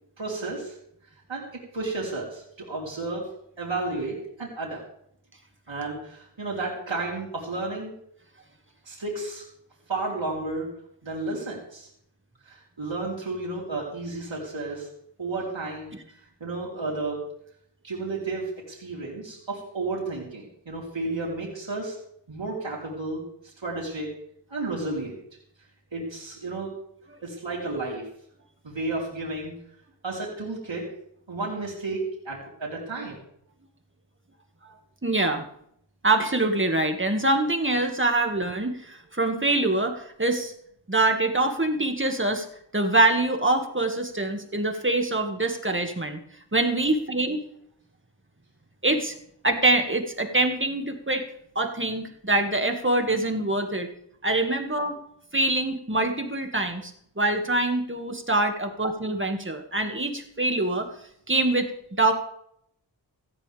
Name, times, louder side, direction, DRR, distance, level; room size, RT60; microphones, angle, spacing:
voice 1, 0.2-0.8 1.3-1.4 1.7-3.2 3.6-4.8 5.7-7.9 8.9-9.5 9.9-10.7 11.0-11.9 12.5-14.9 15.2-15.9 16.4-17.3 17.8-22.0 22.3-24.2 24.5-25.2 25.9-26.7 27.2-28.0 28.6-29.5 30.0-30.8 31.3-33.2, right 2 dB, 75° right, -5 dB, 4.1 m, -32 dB
voice 2, 35.0-35.4 36.0-40.5 40.9-42.5 42.7-46.2 46.5-47.4 48.8-49.1 49.4-53.9 54.2-55.0 55.3-60.9 61.3-62.1, right 2 dB, 25° right, 4 dB, 2.2 m, -24 dB
17.0 x 15.0 x 3.6 m, 0.71 s
wide cardioid pair, 65°, 46 cm